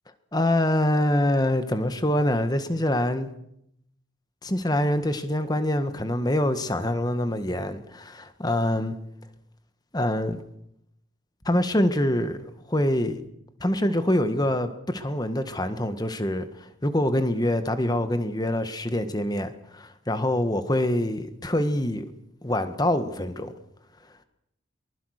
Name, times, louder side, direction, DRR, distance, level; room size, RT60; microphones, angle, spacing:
voice 1, 0.3-3.3 4.4-9.0 9.9-10.4 11.4-13.2 13.6-22.1 22.4-23.5, left 1 dB, 20° left, 10 dB, 1.5 m, -25 dB
23.0 x 20.0 x 6.6 m, 0.76 s
head